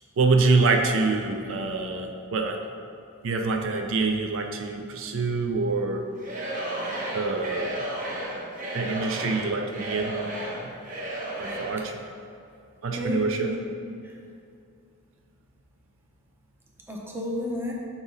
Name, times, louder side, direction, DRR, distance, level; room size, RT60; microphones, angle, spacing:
voice 1, 0.2-2.6 3.2-6.0 7.1-7.8 8.7-10.1 11.4-11.9 12.8-13.5, right 3 dB, 65° right, 4 dB, 0.5 m, -25 dB
Singing / Crowd, 6.2-11.8, right 1 dB, 40° right, 1.0 m, -33 dB
voice 2, 12.9-13.5 13.8-14.2 16.9-17.7, left 1 dB, 10° right, -2 dB, 0.7 m, -32 dB
7.6 x 3.0 x 5.4 m, 2.5 s
head